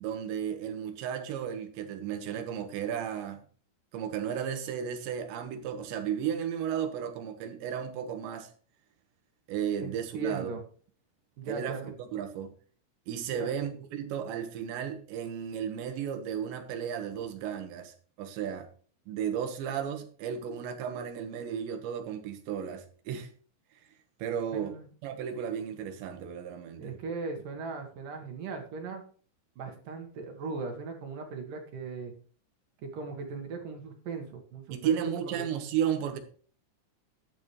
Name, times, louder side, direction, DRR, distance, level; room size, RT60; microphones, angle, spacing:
voice 1, 0.0-3.4 3.9-8.5 9.5-10.5 11.5-12.5 13.1-18.7 19.1-23.3 24.2-24.8 25.0-26.9 34.7-36.2, right 8 dB, 85° right, 3.7 m, -34 dB
voice 2, 9.8-10.6 11.4-11.9 13.4-13.6 24.5-24.9 26.8-29.0 29.6-32.1 32.8-35.0 35.3-35.4, right 4 dB, 60° right, 2.9 m, -38 dB
11.5 x 10.5 x 3.2 m
omnidirectional pair, 5.0 m